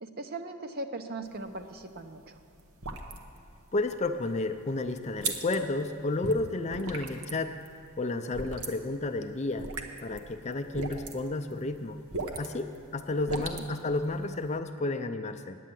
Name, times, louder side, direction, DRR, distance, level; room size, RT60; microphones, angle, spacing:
voice 1, 0.0-2.4 13.3-13.7, right 2 dB, 45° right, 7 dB, 0.7 m, -39 dB
sound 1, 1.2-14.6, right 3 dB, 80° right, 1.0 m, -41 dB
voice 2, 3.7-7.5 8.0-9.7 10.0-12.0 12.4-15.6, left 2 dB, 30° left, 8 dB, 0.5 m, -31 dB
9.7 x 9.2 x 7.6 m, 2.4 s
head